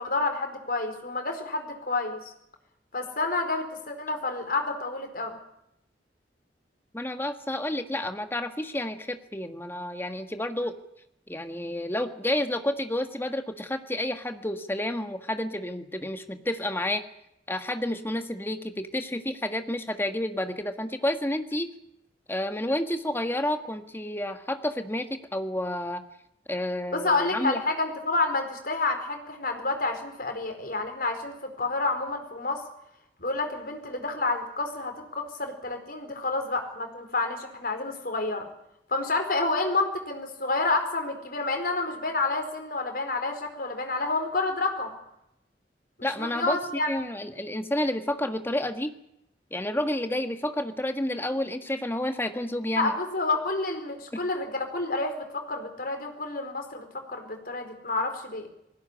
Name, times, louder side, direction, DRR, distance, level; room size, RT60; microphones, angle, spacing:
voice 1, 0.0-2.2 2.9-5.4 26.9-32.6 33.2-38.5 38.9-44.9 46.0-46.9 52.8-58.5, left 3 dB, 55° left, 5 dB, 4.6 m, -29 dB
voice 2, 6.9-10.7 11.3-17.0 17.5-21.7 22.3-26.0 26.5-27.6 46.0-48.9 49.5-52.9, left 1 dB, 15° left, 7 dB, 1.6 m, -30 dB
20.0 x 17.0 x 9.9 m, 0.79 s
head